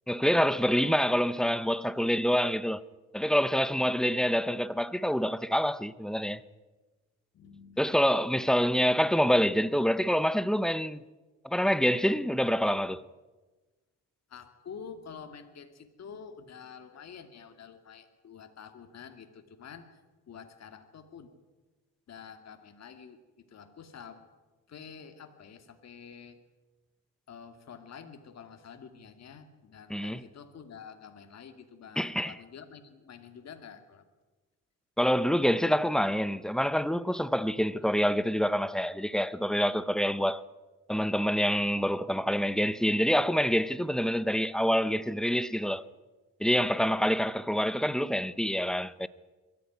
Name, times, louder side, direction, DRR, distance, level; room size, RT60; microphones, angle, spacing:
voice 1, 0.1-2.8 3.1-6.4 7.8-11.0 11.4-13.0 29.9-30.2 32.0-32.3 35.0-40.4 40.9-45.8 46.4-49.1, equal, ahead, 0.8 m, -26 dB
voice 2, 7.3-7.9 8.3-8.4 14.3-21.3 22.1-24.3 24.7-26.4 27.3-34.0, left 6 dB, 55° left, 2.5 m, -48 dB
22.0 x 14.5 x 9.4 m
cardioid pair, 100°, 31 cm